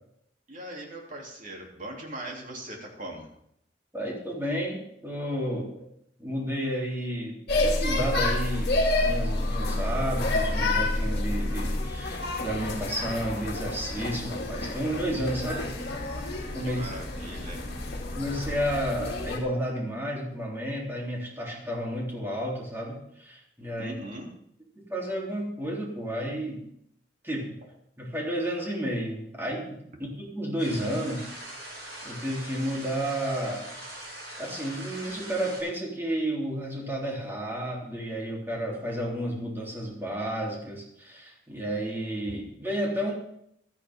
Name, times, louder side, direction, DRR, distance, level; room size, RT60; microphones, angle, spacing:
voice 1, 0.5-3.3 16.0-16.1 16.6-17.7 23.8-24.3, right 1 dB, 45° right, 0 dB, 3.2 m, -40 dB
voice 2, 3.9-5.9 6.2-15.6 16.5-16.9 18.1-23.9 24.8-26.6 27.2-27.6 28.0-31.3 32.0-33.7 34.4-43.1, equal, 15° right, -3 dB, 3.5 m, -31 dB
sound 1, 7.5-19.4, left 2 dB, 60° left, 2.5 m, -29 dB
sound 2, 30.6-35.6, right 1 dB, 65° right, 7.2 m, -42 dB
15.5 x 13.0 x 3.7 m, 0.73 s
head